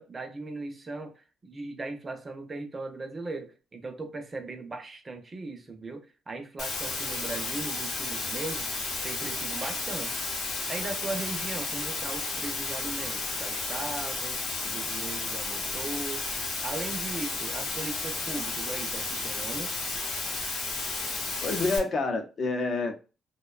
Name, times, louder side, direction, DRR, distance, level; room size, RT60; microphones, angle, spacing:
voice 1, 0.0-8.7 9.0-10.3 10.7-16.3 16.6-19.8, right 3 dB, 30° right, 0.5 m, -38 dB
Water, 6.6-21.8, left 3 dB, 85° left, 0.8 m, -33 dB
voice 2, 21.4-22.9, left 3 dB, 50° left, 0.5 m, -28 dB
2.5 x 2.2 x 2.3 m
cardioid pair, 90°, 0 cm